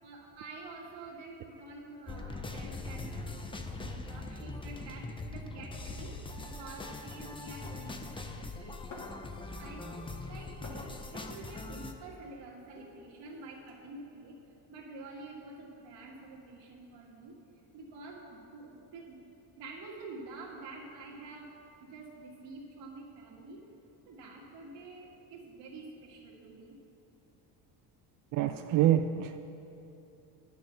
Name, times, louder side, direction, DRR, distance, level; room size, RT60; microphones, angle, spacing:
voice 1, 0.0-6.2 6.4-8.8 9.5-14.4 14.7-17.4 17.7-19.3 19.6-21.5 21.8-23.6 24.1-26.8, right 3 dB, 80° right, -2 dB, 2.2 m, -48 dB
sound 1, 2.1-11.9, left 3 dB, 15° left, 0.5 m, -42 dB
sound 2, 8.9-9.8 10.0-13.7, left 2 dB, 45° left, 2.5 m, -52 dB
voice 2, 28.3-29.4, right 11 dB, 55° right, 7 dB, 0.4 m, -26 dB
9.8 x 6.7 x 6.9 m, 3.0 s
cardioid pair, 125°, 41 cm